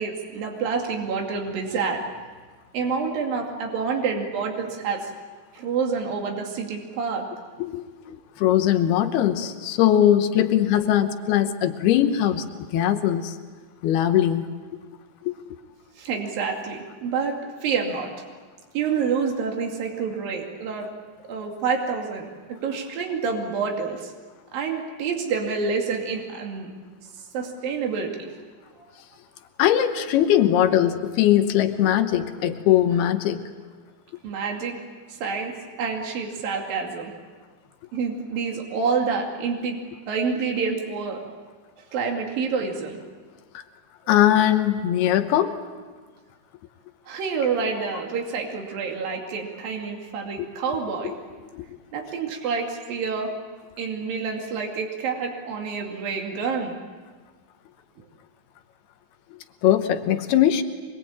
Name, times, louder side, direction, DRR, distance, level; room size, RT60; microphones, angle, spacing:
voice 1, 0.0-2.0 2.7-5.1 5.5-7.3 16.0-18.1 18.7-20.9 21.3-24.1 24.5-26.7 27.3-28.3 28.7-28.8 34.2-34.8 35.1-37.1 37.9-39.8 40.1-41.2 41.9-43.0 47.1-51.1 51.9-53.3 53.8-56.8, right 5 dB, 65° right, 1 dB, 4.1 m, -28 dB
voice 2, 7.6-12.5 12.7-13.4 13.8-14.5 15.3-15.4 29.6-33.4 44.1-45.5 51.5-51.6 59.6-60.6, left 11 dB, 85° left, 7 dB, 3.0 m, -20 dB
24.5 x 23.0 x 8.7 m, 1.4 s
omnidirectional pair, 4.5 m